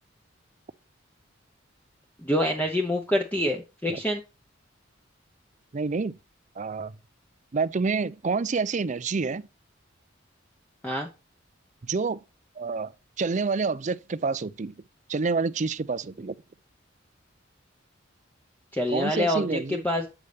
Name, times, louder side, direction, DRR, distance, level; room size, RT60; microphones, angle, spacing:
voice 1, 2.2-4.2 10.8-11.1 18.7-20.1, left 1 dB, 10° left, 0.8 m, -26 dB
voice 2, 5.7-6.1 6.6-6.9 7.5-9.4 11.8-12.2 12.6-12.9 13.2-14.7 15.1-16.3 18.9-19.8, right 4 dB, 40° right, 0.5 m, -28 dB
7.9 x 6.9 x 3.3 m
head